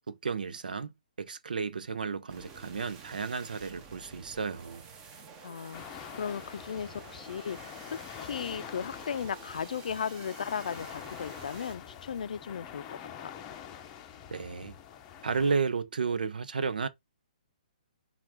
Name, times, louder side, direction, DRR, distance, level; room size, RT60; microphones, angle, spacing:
voice 1, 0.1-4.8 14.3-14.7 15.2-16.9, right 5 dB, 90° right, 0.7 m, -33 dB
sound 1, 2.3-11.8, right 5 dB, 20° right, 0.6 m, -50 dB
voice 2, 5.4-13.3, left 7 dB, 65° left, 0.4 m, -36 dB
sound 2, 5.7-15.5, left 9 dB, 20° left, 0.6 m, -46 dB
5.9 x 2.4 x 3.5 m
hypercardioid pair, 165°, 5 cm